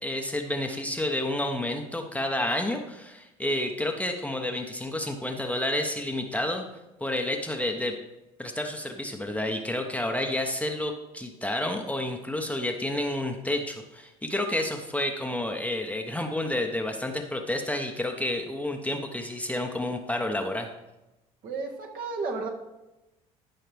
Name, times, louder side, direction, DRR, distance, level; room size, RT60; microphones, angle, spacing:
voice 1, 0.0-6.6 7.0-8.0 8.4-20.7, left 1 dB, 10° left, 3 dB, 1.1 m, -30 dB
voice 2, 21.4-22.5, right 4 dB, 50° right, 0 dB, 1.9 m, -32 dB
13.5 x 5.6 x 3.5 m, 0.97 s
hypercardioid pair, 65°, 18 cm